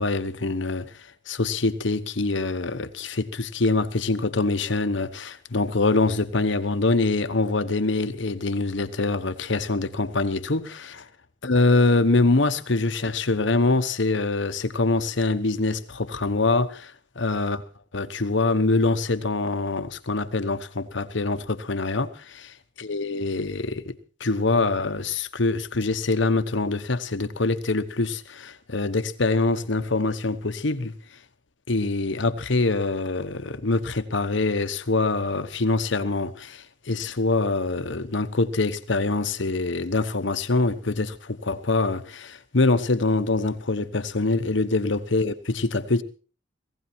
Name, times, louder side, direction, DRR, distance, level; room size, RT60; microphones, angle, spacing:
voice 1, 0.0-11.0 11.4-17.6 17.9-22.4 22.8-30.9 31.7-46.0, left 3 dB, 70° left, 1.1 m, -24 dB
19.0 x 16.5 x 4.5 m
head